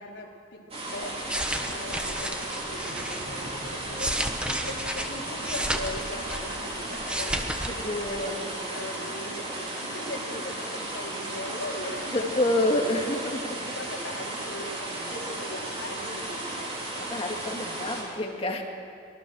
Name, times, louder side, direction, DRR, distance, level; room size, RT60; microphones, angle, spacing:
voice 1, 0.0-7.4 7.7-13.1 13.6-16.7, left 1 dB, 75° left, -2 dB, 4.2 m, -40 dB
sound 1, 0.7-18.0, right 1 dB, 30° right, 4.6 m, -35 dB
sound 2, 1.0-3.2 3.7-6.7 6.9-7.7 8.0-8.2, right 1 dB, 5° right, 1.2 m, -32 dB
sound 3, 2.6-8.0, right 1 dB, 50° right, 1.8 m, -48 dB
voice 2, 7.6-8.4 12.1-13.6 17.1-18.6, left 1 dB, 30° left, 1 dB, 2.4 m, -28 dB
25.5 x 19.5 x 6.5 m, 2.3 s
head